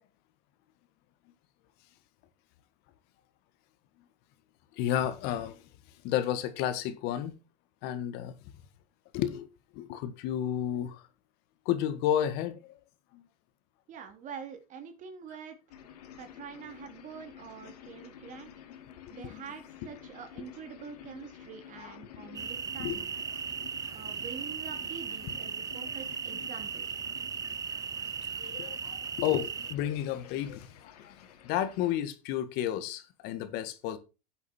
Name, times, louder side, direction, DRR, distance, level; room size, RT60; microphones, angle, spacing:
voice 1, 4.7-5.6 6.0-7.4 7.8-8.3 9.1-9.5 9.7-11.0 11.7-12.7 13.1-13.2 19.2-19.4 21.8-21.9 22.8-23.0 28.4-31.2 31.4-34.0, left 11 dB, 55° left, 1.8 m, -32 dB
voice 2, 13.9-15.6 16.1-18.5 19.1-23.1 23.9-26.8, right 7 dB, 40° right, 3.0 m, -45 dB
sound 1, 15.7-31.9, left 9 dB, 85° left, 2.7 m, -51 dB
sound 2, 22.3-29.7, right 7 dB, 20° right, 0.4 m, -37 dB
10.5 x 8.0 x 4.5 m
supercardioid pair, 110°, 19 cm